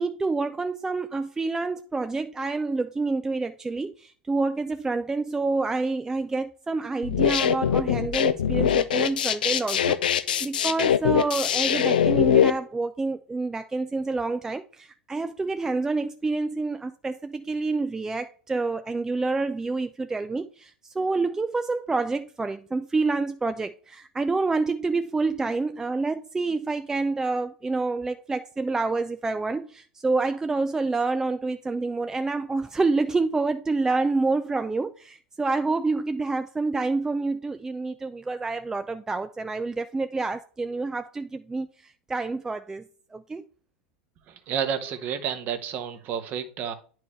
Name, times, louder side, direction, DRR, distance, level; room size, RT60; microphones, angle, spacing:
voice 1, 0.0-42.9 43.1-43.4, right 3 dB, 10° right, 0.4 m, -28 dB
sound 1, 7.0-12.5, left 9 dB, 75° left, 0.5 m, -22 dB
voice 2, 44.3-46.7, right 8 dB, 40° right, 1.1 m, -30 dB
9.6 x 4.7 x 3.2 m
hypercardioid pair, 95°, 5 cm